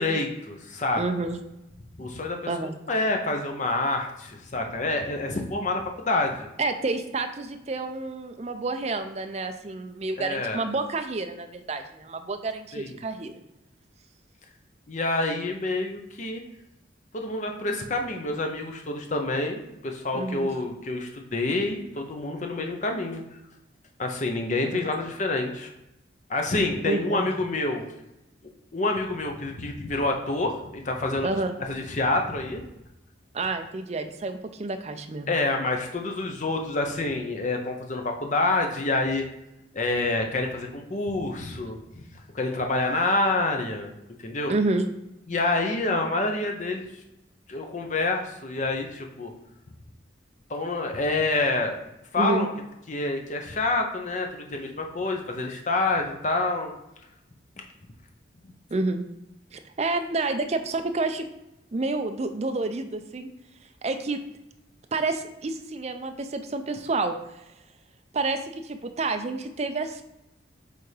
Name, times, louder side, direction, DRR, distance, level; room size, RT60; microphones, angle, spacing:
voice 1, 0.0-1.0 2.0-2.4 2.9-6.5 10.2-10.6 12.7-13.0 14.9-16.4 17.1-23.2 24.0-25.7 26.3-27.8 28.7-31.3 31.6-32.7 35.3-39.2 39.7-41.8 42.3-43.9 44.2-44.5 45.3-46.9 47.5-49.3 50.5-51.8 52.1-52.5 52.9-56.7, left 2 dB, 40° left, 3 dB, 0.7 m, -27 dB
voice 2, 1.0-1.4 2.5-2.7 6.6-13.4 20.1-20.5 24.7-24.8 26.8-27.3 31.2-31.6 33.3-35.3 44.5-44.9 52.2-52.5 58.7-59.0 59.5-61.3 61.7-63.3 63.8-64.2 64.9-67.1 68.1-70.0, right 3 dB, 35° right, 7 dB, 0.4 m, -29 dB
8.2 x 3.5 x 3.3 m, 0.89 s
head